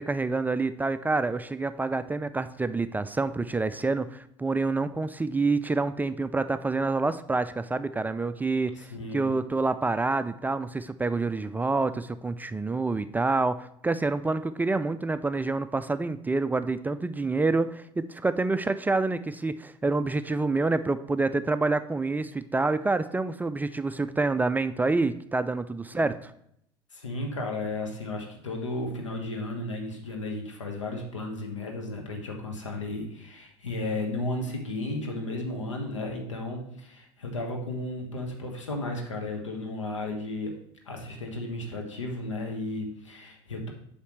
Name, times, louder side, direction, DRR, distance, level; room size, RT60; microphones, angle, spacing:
voice 1, 0.0-26.3, right 3 dB, 10° right, 12 dB, 0.3 m, -27 dB
voice 2, 8.7-9.3 25.9-26.1 26.9-40.6 40.8-43.7, left 2 dB, 90° left, 2 dB, 1.4 m, -34 dB
8.2 x 5.7 x 3.1 m, 0.72 s
hypercardioid pair, 80°, 15 cm